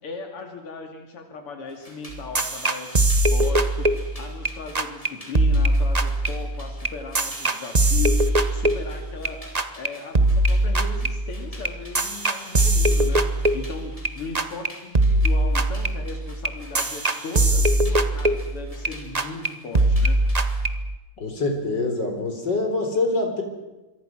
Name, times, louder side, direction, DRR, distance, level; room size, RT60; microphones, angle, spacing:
voice 1, 0.0-20.2, left 3 dB, 85° left, 4 dB, 3.4 m, -37 dB
sound 1, 1.7-20.7, equal, 15° left, 5.6 m, -48 dB
sound 2, 2.1-4.5 4.8-5.1 5.4-9.3 9.6-9.9 10.2-14.1 14.4-14.7 15.0-18.9 19.2-19.5 19.8-21.0, right 1 dB, 25° right, 1.0 m, -21 dB
voice 2, 21.2-23.4, left 2 dB, 50° left, 4 dB, 4.7 m, -25 dB
27.0 x 23.5 x 6.2 m, 1.1 s
omnidirectional pair, 2.4 m